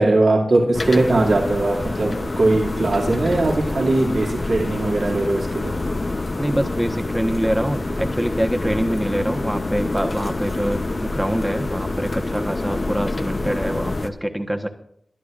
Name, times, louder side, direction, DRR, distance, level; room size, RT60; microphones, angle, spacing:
voice 1, 0.0-5.8, right 2 dB, 80° right, -2 dB, 2.6 m, -20 dB
sound 1, 0.7-14.1, left 2 dB, 45° left, 0.9 m, -27 dB
voice 2, 6.3-14.7, equal, 10° right, 5 dB, 1.3 m, -25 dB
22.0 x 11.5 x 2.6 m, 0.71 s
cardioid pair, 55°, 0 cm